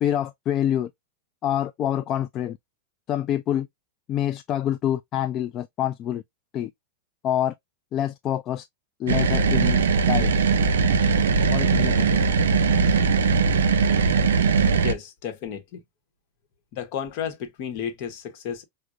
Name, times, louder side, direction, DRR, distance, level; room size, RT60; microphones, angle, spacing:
voice 1, 0.0-0.9 1.4-2.6 3.1-3.7 4.1-6.2 6.5-6.7 7.2-7.5 7.9-8.7 9.0-9.8 10.1-10.3 11.5-12.2, left 11 dB, 35° left, 0.3 m, -26 dB
sound 1, 9.1-14.9, right 5 dB, 85° right, 0.5 m, -20 dB
voice 2, 14.8-15.8 16.7-18.6, left 8 dB, 55° left, 1.0 m, -32 dB
4.7 x 2.2 x 2.5 m
hypercardioid pair, 120°, 0 cm